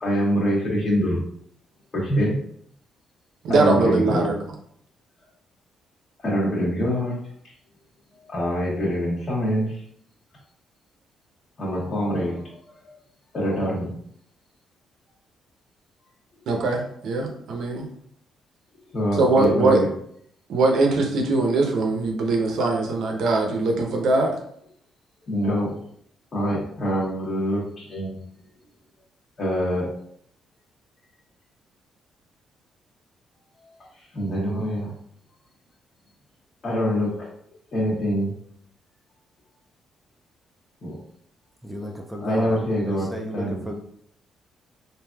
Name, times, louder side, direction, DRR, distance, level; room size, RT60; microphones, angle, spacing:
voice 1, 0.0-1.2 2.0-2.4 3.5-4.3 6.2-7.1 8.2-9.8 11.6-12.9 13.3-13.9 18.9-19.9 25.3-25.8 26.3-28.2 29.4-29.9 33.6-33.7 34.1-34.9 36.6-37.3 37.7-38.3 40.8-41.0 42.2-43.6, equal, 40° left, -7 dB, 0.9 m, -25 dB
voice 2, 3.4-4.4 16.5-17.9 19.2-19.8 20.5-24.4, right 3 dB, 75° right, 2 dB, 0.6 m, -21 dB
voice 3, 41.6-42.6 42.8-43.8, equal, 5° right, 1 dB, 0.4 m, -33 dB
3.3 x 2.6 x 2.2 m, 0.66 s
cardioid pair, 90°, 0 cm